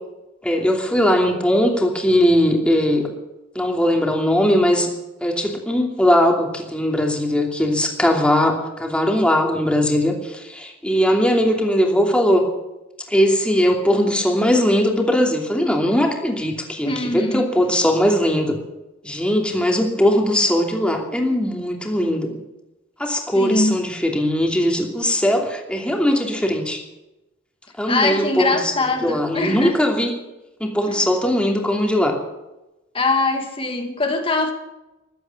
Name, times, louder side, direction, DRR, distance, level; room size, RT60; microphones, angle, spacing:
voice 1, 0.4-3.1 3.5-4.9 5.2-12.4 13.1-18.6 19.0-22.4 23.0-26.8 27.8-28.7 29.0-30.1 30.6-32.2, equal, 5° left, 1 dB, 2.8 m, -19 dB
voice 2, 16.9-17.7 23.3-23.8 27.9-29.9 30.9-31.0 32.9-34.5, left 3 dB, 30° left, 4 dB, 2.0 m, -22 dB
15.0 x 12.0 x 7.2 m, 0.97 s
head